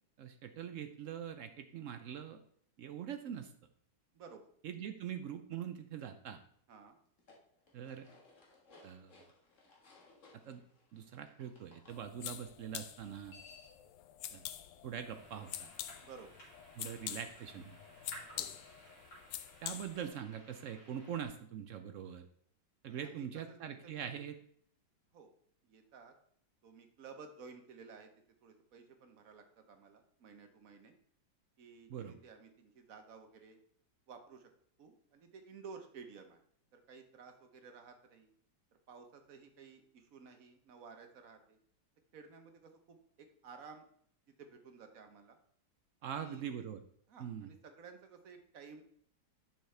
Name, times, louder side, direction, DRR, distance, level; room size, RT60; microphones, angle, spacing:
voice 1, 0.2-2.4 2.8-3.5 4.6-6.4 7.7-8.1 8.8-9.1 10.5-10.6 10.9-13.4 14.3-14.4 14.8-15.7 16.8-17.8 19.6-22.3 22.8-24.4 31.9-32.2 46.0-46.8 47.2-47.5, right 8 dB, 75° right, 8 dB, 0.7 m, -43 dB
voice 2, 4.1-4.5 6.7-7.0 16.0-16.4 18.3-18.6 22.8-24.2 25.1-25.3 25.6-26.1 26.6-28.1 28.4-31.0 31.6-33.6 34.1-34.5 34.8-36.4 36.7-38.3 38.9-41.6 42.1-43.8 44.4-45.4 46.0-46.4 47.1-48.8, right 5 dB, 55° right, 6 dB, 1.2 m, -54 dB
sound 1, 7.1-12.0 13.0-13.9, left 3 dB, 45° left, 1.9 m, -61 dB
sound 2, 11.9-20.2, left 12 dB, 85° left, 1.3 m, -46 dB
sound 3, 15.1-21.3, right 1 dB, 70° left, 3.9 m, -57 dB
9.0 x 7.1 x 3.3 m, 0.64 s
omnidirectional pair, 2.0 m